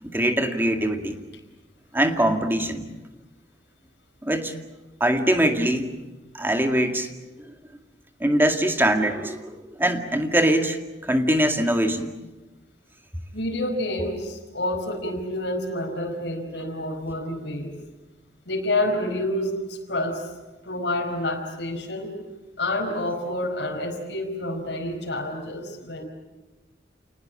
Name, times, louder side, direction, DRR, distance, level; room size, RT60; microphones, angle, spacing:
voice 1, 0.0-1.2 1.9-2.9 4.2-4.5 5.0-6.0 6.3-7.1 8.2-10.8 11.0-12.1, right 1 dB, 10° right, 5 dB, 2.1 m, -22 dB
voice 2, 13.3-17.7 18.4-20.3 20.6-22.1 22.6-26.0, left 1 dB, 70° left, 0 dB, 4.9 m, -28 dB
28.5 x 19.5 x 8.7 m, 1.1 s
head